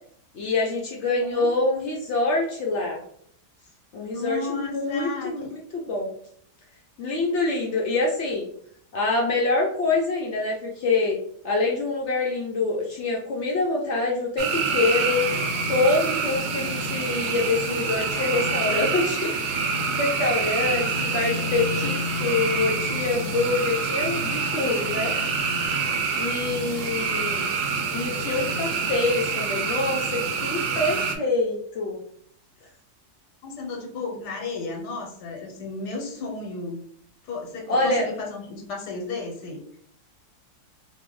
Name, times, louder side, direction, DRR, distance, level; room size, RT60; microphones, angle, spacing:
voice 1, 0.3-3.0 3.9-5.4 5.7-6.1 7.0-8.5 8.9-11.2 11.4-15.2 15.7-25.1 26.2-27.5 27.9-32.0 37.7-38.1, left 3 dB, 75° left, -2 dB, 0.6 m, -25 dB
voice 2, 4.1-5.5 5.8-5.9 33.4-36.8 37.2-39.8, left 3 dB, 90° left, 1 dB, 1.3 m, -34 dB
sound 1, 14.4-31.2, right 4 dB, 80° right, 1.1 m, -26 dB
2.8 x 2.0 x 3.7 m, 0.67 s
omnidirectional pair, 1.7 m